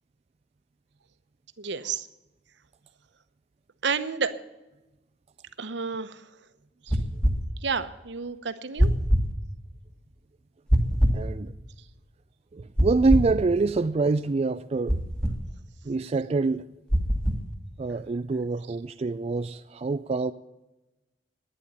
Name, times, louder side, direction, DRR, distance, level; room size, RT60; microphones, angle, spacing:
voice 1, 1.6-2.1 3.8-4.3 5.6-6.2 6.8-7.0 7.6-8.9, right 5 dB, 70° right, 0.9 m, -30 dB
sound 1, 6.9-7.4 8.8-9.3 10.7-11.2 12.8-13.3 14.9-15.4 16.9-17.4, equal, 5° left, 1.6 m, -22 dB
voice 2, 11.1-11.5 12.5-15.0 15.8-16.7 17.8-20.3, right 3 dB, 35° right, 0.4 m, -26 dB
11.5 x 9.9 x 8.9 m
head